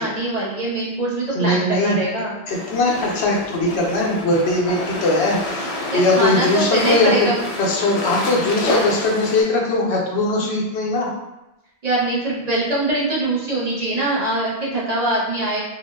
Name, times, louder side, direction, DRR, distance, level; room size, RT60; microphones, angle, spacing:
voice 1, 0.0-2.4 5.9-7.4 10.4-10.6 11.8-15.6, right 1 dB, 45° right, -5 dB, 0.7 m, -23 dB
voice 2, 1.3-2.0 2.5-5.7 5.9-7.3 7.6-11.1, left 2 dB, 85° left, -2 dB, 0.9 m, -20 dB
sound 1, 2.5-9.4, left 1 dB, 55° left, 0.4 m, -28 dB
3.7 x 2.0 x 2.2 m, 0.94 s
omnidirectional pair, 1.0 m